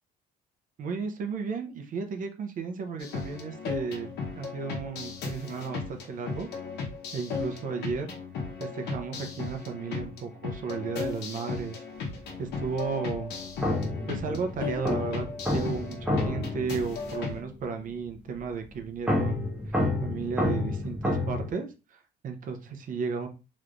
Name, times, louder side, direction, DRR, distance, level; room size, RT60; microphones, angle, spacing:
voice 1, 0.8-6.5 7.1-8.1 8.6-11.8 12.4-13.3 14.1-23.3, right 5 dB, 50° right, 6 dB, 0.7 m, -34 dB
sound 1, 3.0-17.4, left 4 dB, 75° left, 1.0 m, -36 dB
sound 2, 12.1-12.6 13.6-17.6 19.1-21.5, left 1 dB, 5° right, 0.9 m, -30 dB
3.2 x 3.1 x 2.5 m, 0.30 s
cardioid pair, 110°, 17 cm